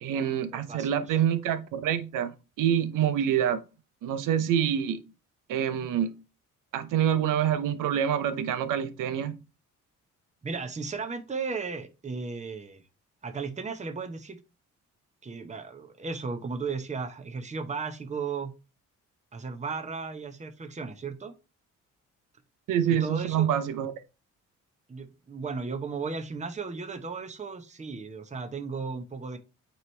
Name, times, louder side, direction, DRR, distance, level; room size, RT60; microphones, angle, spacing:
voice 1, 0.0-3.6 4.0-5.0 5.5-6.1 6.7-9.4 22.7-23.9, right 9 dB, 85° right, 0.8 m, -26 dB
voice 2, 0.5-1.2 10.4-12.8 13.2-14.4 15.2-18.5 19.3-21.3 22.9-23.5 24.9-29.4, right 4 dB, 20° right, 0.9 m, -35 dB
9.0 x 3.2 x 3.2 m
cardioid pair, 85°, 31 cm